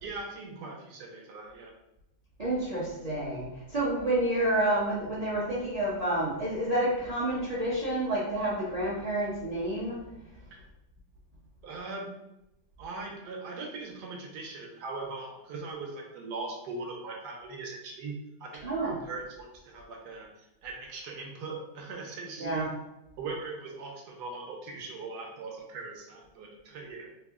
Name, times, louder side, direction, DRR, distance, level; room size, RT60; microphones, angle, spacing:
voice 1, 0.0-1.7 10.5-10.6 11.6-12.1 12.8-22.7 23.2-27.1, right 3 dB, 75° right, 1 dB, 1.2 m, -40 dB
voice 2, 2.4-10.0 18.6-18.9 22.4-22.7, right 1 dB, 40° right, -7 dB, 0.5 m, -29 dB
3.5 x 2.0 x 3.5 m, 0.89 s
omnidirectional pair, 1.8 m